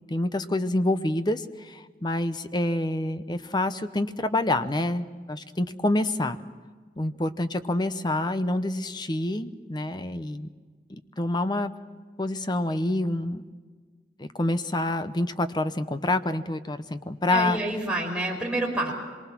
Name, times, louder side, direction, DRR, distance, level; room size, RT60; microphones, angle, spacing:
voice 1, 0.1-6.4 7.0-10.5 11.2-11.7 12.2-13.4 14.2-17.6, left 1 dB, 25° left, 11 dB, 0.9 m, -27 dB
voice 2, 17.3-18.9, right 1 dB, 5° right, -2 dB, 5.2 m, -28 dB
25.5 x 23.0 x 6.0 m, 1.5 s
head